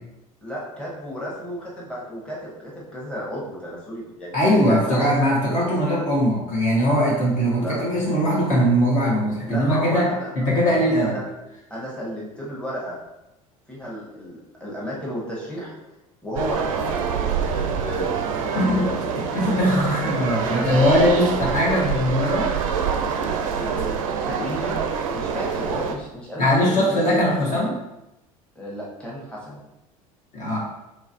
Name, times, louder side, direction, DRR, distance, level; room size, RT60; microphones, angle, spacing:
voice 1, 0.4-5.1 7.6-7.9 9.5-10.3 10.7-11.2 11.7-13.0 13.7-15.7 16.2-18.1 18.4-19.0 20.5-21.1 23.6-24.9 25.1-27.3 28.5-29.6, equal, 5° left, -6 dB, 1.2 m, -33 dB
voice 2, 4.3-10.1 10.3-11.1 18.6-18.9 19.3-22.5 26.4-27.8 30.3-30.6, equal, 40° left, -4 dB, 1.3 m, -20 dB
sound 1, 16.4-26.0, right 6 dB, 65° right, 0.4 m, -26 dB
3.8 x 3.2 x 2.7 m, 0.92 s
figure-of-eight pair, 65°, 18 cm